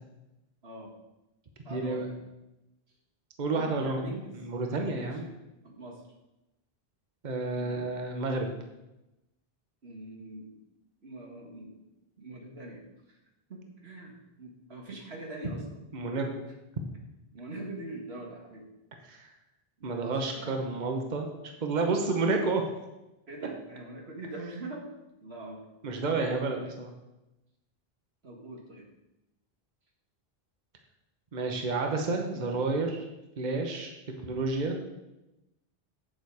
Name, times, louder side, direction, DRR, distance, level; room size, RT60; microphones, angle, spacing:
voice 1, 0.6-0.9 1.6-2.2 3.5-4.3 4.9-5.4 5.6-6.0 7.5-7.9 9.8-10.6 11.0-11.8 12.2-13.2 13.5-14.1 14.4-15.9 17.3-18.6 19.8-20.6 23.3-24.9 25.2-25.7 26.1-26.7 28.2-28.9 32.3-32.6, right 2 dB, 90° right, 0 dB, 2.0 m, -43 dB
voice 2, 1.7-2.1 3.4-5.3 7.2-8.5 15.9-16.4 19.1-19.3 19.8-21.3 21.6-22.6 25.8-26.9 31.3-33.0 33.4-33.9 34.2-34.8, right 3 dB, 50° right, 3 dB, 1.1 m, -30 dB
8.7 x 7.1 x 4.8 m, 0.95 s
omnidirectional pair, 1.0 m